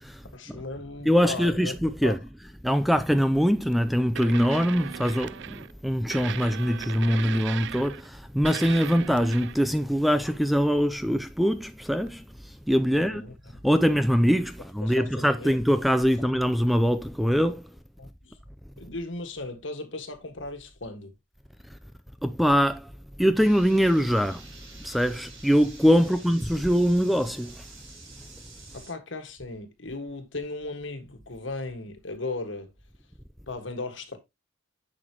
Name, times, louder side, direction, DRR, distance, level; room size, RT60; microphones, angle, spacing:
voice 1, 0.3-2.1 12.9-13.5 14.8-15.5 18.0-18.4 18.8-21.1 28.7-32.7 33.5-34.2, left 2 dB, 70° left, 1.7 m, -36 dB
voice 2, 1.1-2.2 2.6-13.2 13.6-17.7 22.2-22.9 23.2-24.5 24.8-27.6, equal, ahead, 0.4 m, -23 dB
sound 1, 3.6-3.7 4.2-5.7 6.1-8.2 8.4-9.8 12.1-12.2, right 9 dB, 60° right, 0.4 m, -37 dB
sound 2, 23.4-28.9, right 4 dB, 85° right, 5.2 m, -49 dB
10.0 x 6.0 x 3.0 m
head